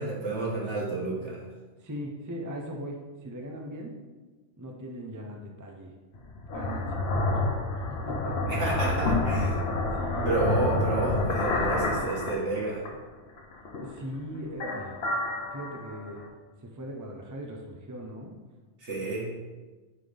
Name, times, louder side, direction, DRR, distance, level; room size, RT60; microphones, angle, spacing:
voice 1, 0.0-1.4 8.5-9.6 10.3-12.9 18.8-19.4, right 3 dB, 75° right, -3 dB, 1.9 m, -30 dB
voice 2, 1.8-4.0 4.6-5.9 6.5-7.4 7.8-8.4 9.9-10.4 10.7-11.0 13.8-15.0 15.4-16.2 16.6-18.3, equal, 20° right, 1 dB, 0.6 m, -40 dB
sound 1, 6.1-13.0 13.4-14.2 14.5-16.3, left 2 dB, 60° left, 1.1 m, -29 dB
8.7 x 4.1 x 3.4 m, 1.3 s
omnidirectional pair, 1.2 m